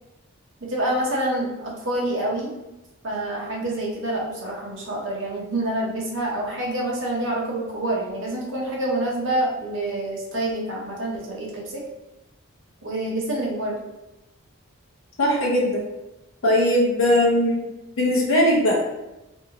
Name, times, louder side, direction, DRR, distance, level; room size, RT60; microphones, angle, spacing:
voice 1, 0.6-2.5 3.0-11.8 12.8-13.8, right 1 dB, 60° right, -2 dB, 0.8 m, -27 dB
voice 2, 15.2-15.8 16.4-17.7 18.0-18.8, left 1 dB, 75° left, -2 dB, 0.8 m, -19 dB
2.7 x 2.6 x 2.8 m, 0.97 s
head